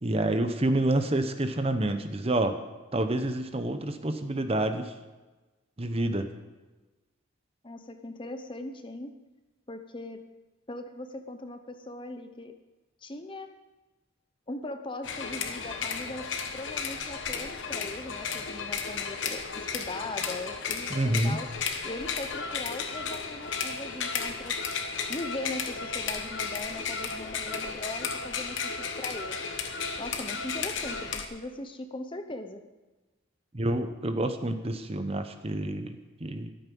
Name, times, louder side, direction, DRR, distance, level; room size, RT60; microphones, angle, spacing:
voice 1, 0.0-2.6 2.9-4.9 5.8-6.3 20.9-21.4 33.5-36.5, right 1 dB, 30° right, 8 dB, 0.8 m, -28 dB
voice 2, 7.6-9.1 9.7-10.2 10.7-12.5 13.0-13.5 14.5-21.5 21.8-24.6 25.1-29.5 30.0-32.6, left 2 dB, 25° left, 7 dB, 0.8 m, -39 dB
sound 1, 15.0-31.3, left 5 dB, 60° left, 1.2 m, -34 dB
13.5 x 12.0 x 5.4 m, 1.2 s
head